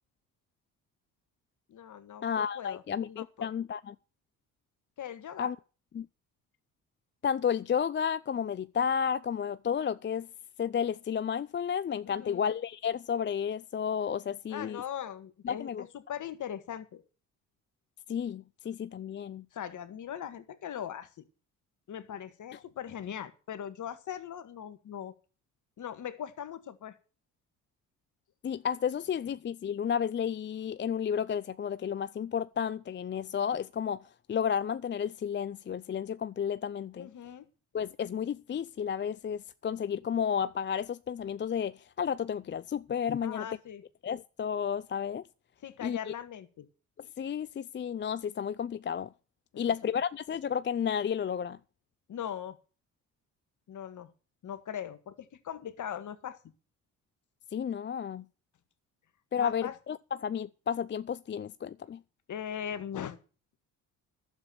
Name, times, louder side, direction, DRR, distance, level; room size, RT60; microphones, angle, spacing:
voice 1, 1.7-3.5 5.0-5.5 12.0-12.5 14.5-17.0 19.5-21.2 21.9-25.1 25.8-27.0 37.0-37.5 43.2-43.8 45.6-46.7 49.5-49.6 52.1-52.6 53.7-54.1 54.4-56.4 59.4-59.8 62.3-63.2, left 9 dB, 55° left, 1.7 m, -40 dB
voice 2, 2.2-3.9 5.4-5.6 5.9-6.1 7.2-10.3 10.6-14.8 15.4-15.8 18.1-19.4 28.4-37.1 37.7-43.4 44.0-45.2 45.8-46.0 47.2-49.1 49.6-51.6 57.5-58.2 59.3-62.0, left 8 dB, 30° left, 0.5 m, -32 dB
12.0 x 7.3 x 7.7 m
hypercardioid pair, 60°, 37 cm